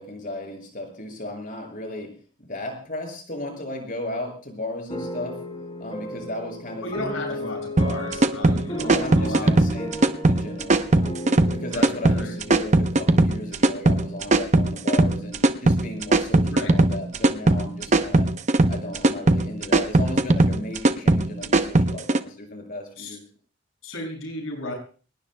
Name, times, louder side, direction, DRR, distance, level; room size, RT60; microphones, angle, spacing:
voice 1, 0.0-2.1 2.4-5.4 5.8-6.9 8.9-11.1 11.5-18.3 18.7-23.2, left 1 dB, 45° left, 2 dB, 6.4 m, -35 dB
sound 1, 4.9-14.1, equal, 25° left, 7.8 m, -35 dB
voice 2, 6.8-9.5 11.7-12.3 16.4-16.8 23.0-23.2 23.8-24.7, left 1 dB, 80° left, 1 dB, 6.4 m, -34 dB
sound 2, 7.8-22.2, right 2 dB, 35° right, 0.8 m, -19 dB
24.5 x 20.0 x 2.2 m, 0.40 s
head